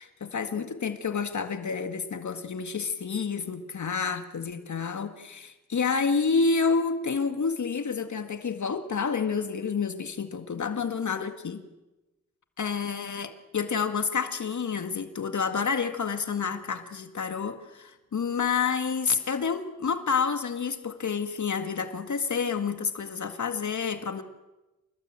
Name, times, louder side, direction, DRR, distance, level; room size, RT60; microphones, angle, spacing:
voice 1, 0.0-11.6 12.6-24.2, left 5 dB, 60° left, 8 dB, 1.9 m, -29 dB
28.0 x 19.0 x 8.9 m, 1.0 s
wide cardioid pair, 110°, 33 cm